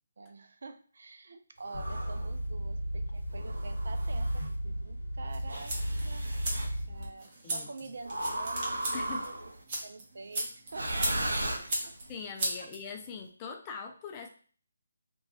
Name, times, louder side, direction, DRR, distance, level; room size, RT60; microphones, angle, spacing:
voice 1, 0.2-6.3 6.9-9.3 9.8-11.4 11.8-11.9, right 3 dB, 60° right, 7 dB, 0.3 m, -47 dB
sound 1, 1.7-7.1, equal, 65° left, 0.9 m, -34 dB
sound 2, 1.7-2.3 3.3-4.5 5.5-6.7 8.1-9.6 10.7-12.1, right 1 dB, 80° right, 0.7 m, -36 dB
sound 3, 5.3-13.3, right 1 dB, 40° right, 0.9 m, -38 dB
voice 2, 7.4-8.0 8.9-9.3 12.1-14.3, left 5 dB, 20° left, 3 dB, 0.4 m, -42 dB
2.5 x 2.2 x 3.0 m, 0.43 s
figure-of-eight pair, 150°, 0 cm